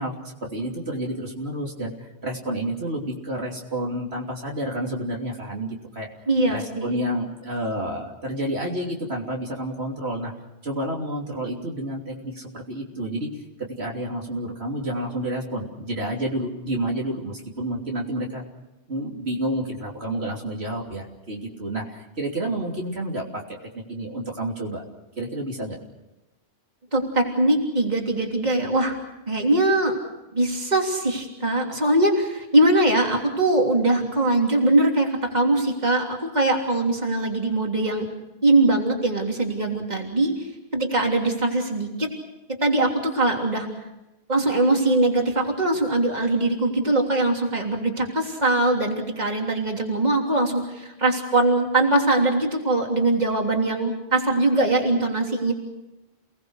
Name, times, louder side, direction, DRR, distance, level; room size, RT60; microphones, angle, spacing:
voice 1, 0.0-6.1 6.5-10.3 10.6-18.4 18.9-24.8 25.2-25.8, right 1 dB, 70° right, -1 dB, 3.3 m, -30 dB
voice 2, 6.3-6.9 26.9-28.9 29.3-29.9 30.3-38.0 38.4-40.3 40.7-42.1 42.6-43.7 44.3-55.5, right 2 dB, 40° right, 1 dB, 3.4 m, -21 dB
29.5 x 19.5 x 6.5 m, 0.97 s
omnidirectional pair, 1.1 m